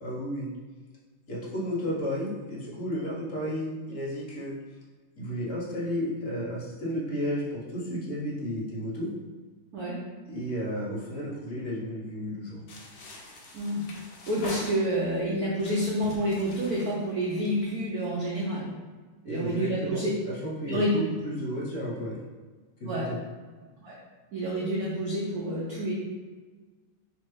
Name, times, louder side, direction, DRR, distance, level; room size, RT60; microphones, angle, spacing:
voice 1, 0.0-0.5 1.3-4.5 5.2-9.1 10.3-12.6 19.3-22.2 22.8-23.2, equal, 50° left, -5 dB, 1.0 m, -33 dB
sound 1, 12.7-15.2 15.6-17.8, left 1 dB, 80° left, 0.7 m, -44 dB
voice 2, 14.3-18.7 19.2-20.1 20.7-21.0 22.9-23.1 23.8-24.0 24.3-25.9, equal, 65° right, -5 dB, 0.9 m, -28 dB
3.2 x 3.1 x 4.7 m, 1.4 s
omnidirectional pair, 2.4 m